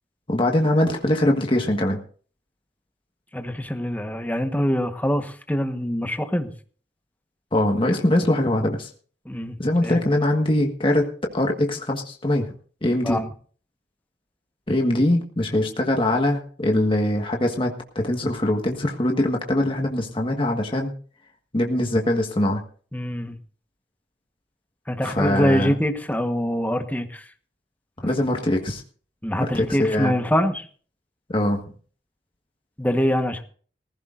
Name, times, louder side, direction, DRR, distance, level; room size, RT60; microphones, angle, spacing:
voice 1, 0.3-2.0 7.5-8.9 9.6-12.5 12.8-13.2 14.7-20.9 21.5-22.6 25.0-25.7 28.0-28.8 29.4-30.1 31.3-31.6, left 1 dB, 30° left, 2 dB, 1.5 m, -22 dB
voice 2, 3.3-6.5 9.2-9.5 9.8-10.0 13.0-13.3 22.9-23.4 24.9-27.2 29.2-30.6 32.8-33.4, equal, 10° left, 7 dB, 1.2 m, -24 dB
19.0 x 15.5 x 2.5 m, 0.43 s
head